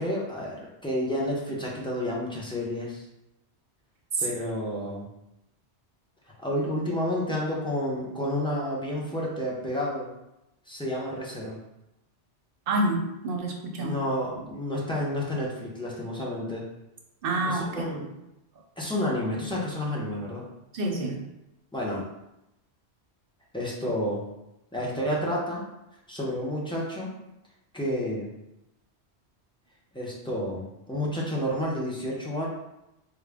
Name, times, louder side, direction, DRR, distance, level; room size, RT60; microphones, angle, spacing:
voice 1, 0.0-3.0 4.2-5.1 6.4-10.1 10.7-11.6 13.8-16.7 17.5-18.1 18.8-20.4 21.7-22.1 23.5-24.2 24.7-25.6 26.1-27.1 27.7-28.3 29.9-32.5, left 1 dB, 5° left, -5 dB, 0.5 m, -30 dB
voice 2, 12.7-13.9 17.2-18.0 20.7-21.2, right 2 dB, 60° right, 1 dB, 0.7 m, -28 dB
3.7 x 2.1 x 3.4 m, 0.89 s
omnidirectional pair, 1.1 m